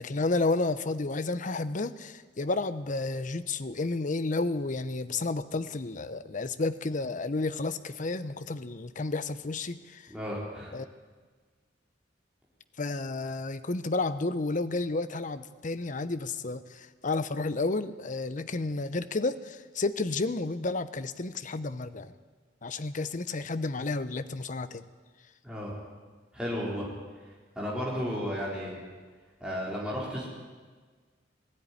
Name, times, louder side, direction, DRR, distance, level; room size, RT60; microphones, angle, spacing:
voice 1, 0.0-10.1 10.7-10.9 12.8-22.1 22.6-24.9, left 3 dB, 45° left, 12 dB, 0.8 m, -31 dB
voice 2, 10.1-10.7 25.4-25.8 26.3-26.9 27.6-28.8 29.4-30.3, equal, 5° right, -5 dB, 3.9 m, -33 dB
20.0 x 13.5 x 9.8 m, 1.5 s
head